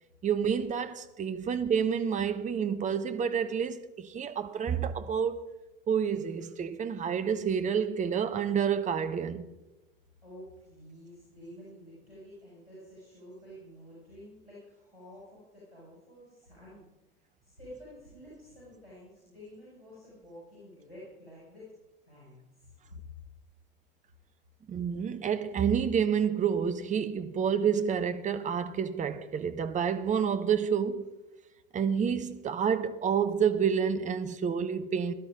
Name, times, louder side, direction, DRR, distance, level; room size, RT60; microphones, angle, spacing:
voice 1, 0.2-5.4 5.9-9.5 24.7-31.1 31.7-35.1, right 7 dB, 25° right, 0.9 m, -29 dB
voice 2, 10.2-16.8 17.4-21.7 22.0-22.7, equal, 85° left, 6.0 m, -50 dB
17.5 x 12.0 x 3.8 m
figure-of-eight pair, 70°, 29 cm